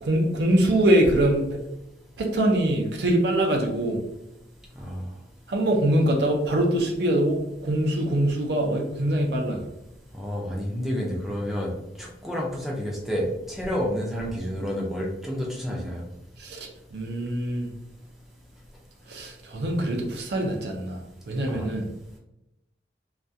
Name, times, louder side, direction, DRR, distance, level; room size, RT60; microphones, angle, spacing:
voice 1, 0.0-1.6 2.2-4.0 5.5-9.6 16.4-17.7 19.1-21.0 21.3-21.9, right 1 dB, 70° right, 1 dB, 0.5 m, -23 dB
voice 2, 4.8-5.1 10.1-11.7 12.0-16.0 21.5-21.7, equal, ahead, -3 dB, 0.4 m, -30 dB
2.3 x 2.3 x 2.6 m, 0.86 s
head